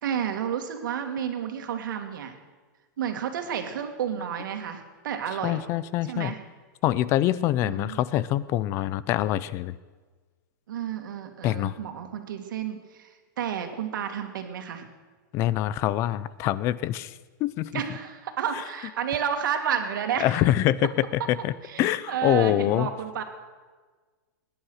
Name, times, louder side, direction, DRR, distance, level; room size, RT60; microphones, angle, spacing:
voice 1, 0.0-2.3 3.0-5.6 6.1-6.4 7.6-8.0 10.7-14.9 17.7-20.4 21.6-23.2, right 8 dB, 75° right, 5 dB, 2.2 m, -31 dB
voice 2, 5.4-6.3 6.8-9.8 11.4-11.8 15.3-17.7 20.2-20.9 21.3-21.5 21.8-22.9, left 13 dB, 25° left, 18 dB, 0.4 m, -25 dB
21.0 x 10.0 x 6.5 m, 1.4 s
supercardioid pair, 165°, 11 cm